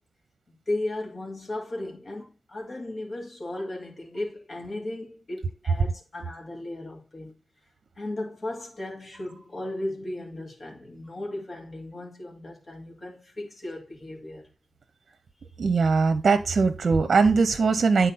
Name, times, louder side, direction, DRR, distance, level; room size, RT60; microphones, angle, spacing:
voice 1, 0.5-7.4 8.0-14.5, left 1 dB, 40° left, 2.5 m, -36 dB
voice 2, 15.6-18.1, right 4 dB, 55° right, 0.8 m, -21 dB
9.1 x 4.2 x 4.1 m
wide cardioid pair, 120°, 0 cm